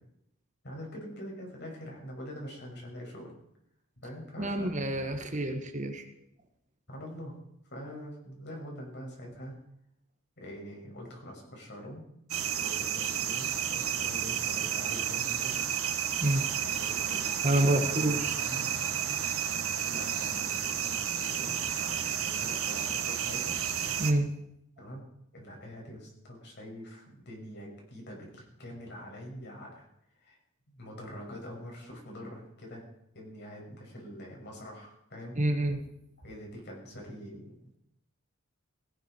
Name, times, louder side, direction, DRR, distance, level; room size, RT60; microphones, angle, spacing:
voice 1, 0.6-3.3 4.0-4.7 6.9-7.3 7.7-9.5 10.4-12.0 12.6-15.6 16.3-18.7 19.8-23.6 24.8-25.0 25.3-29.9 30.2-30.4 30.7-32.8 33.1-35.4 36.2-37.5, equal, 55° left, 0 dB, 6.6 m, -44 dB
voice 2, 4.4-6.0 16.2-16.4 17.4-18.4 24.0-24.3 35.3-35.8, right 1 dB, 35° right, 6 dB, 1.7 m, -28 dB
sound 1, 12.3-24.1, right 9 dB, 85° right, 1.7 m, -31 dB
18.0 x 16.5 x 4.6 m, 0.79 s
head